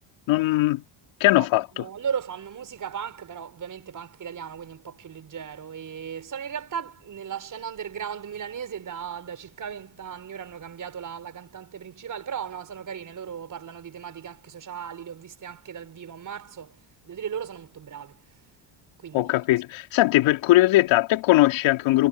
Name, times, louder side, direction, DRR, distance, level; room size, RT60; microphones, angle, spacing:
voice 1, 0.3-0.8 1.2-1.8 19.1-22.1, left 17 dB, 75° left, 3.2 m, -20 dB
voice 2, 1.7-18.4 19.0-19.3, right 8 dB, 40° right, 5.7 m, -36 dB
supercardioid pair, 100°, 46 cm